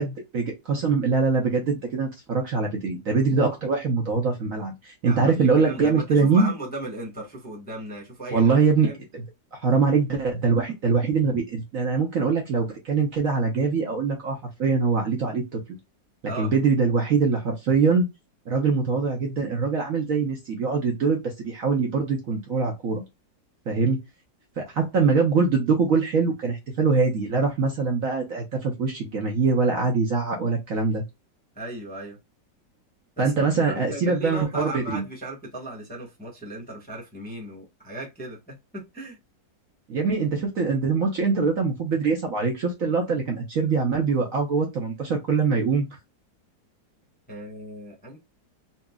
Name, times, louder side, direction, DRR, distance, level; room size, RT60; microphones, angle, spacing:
voice 1, 0.0-6.5 8.3-8.9 9.1-9.2 9.6-15.6 16.4-18.1 18.5-23.0 23.7-24.0 24.6-31.0 33.2-35.0 39.9-45.9, right 4 dB, 55° right, 1.1 m, -23 dB
voice 2, 5.0-8.5 8.8-9.0 16.3-16.5 31.5-32.2 33.2-39.2 47.3-48.2, right 1 dB, 5° left, 0.9 m, -36 dB
4.1 x 2.9 x 2.3 m
omnidirectional pair, 2.0 m